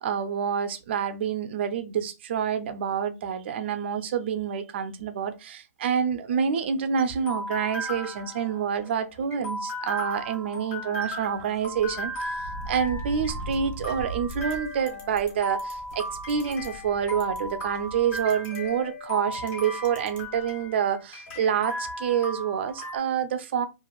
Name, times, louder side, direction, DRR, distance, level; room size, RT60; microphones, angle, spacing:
voice 1, 0.0-12.3 12.7-23.7, right 7 dB, 40° right, 0.4 m, -27 dB
sound 1, 6.3-23.0, equal, 40° left, 1.1 m, -36 dB
sound 2, 11.5-18.3 18.6-18.7 19.8-19.9 20.2-20.4, right 1 dB, 75° left, 1.0 m, -40 dB
sound 3, 14.3-14.5 14.9-15.3 15.6-15.7 16.3-16.7 17.2-17.4 18.2-18.6 19.3-19.5 19.8-20.2, left 3 dB, 20° left, 0.6 m, -47 dB
2.9 x 2.5 x 2.3 m
hypercardioid pair, 160°, 9 cm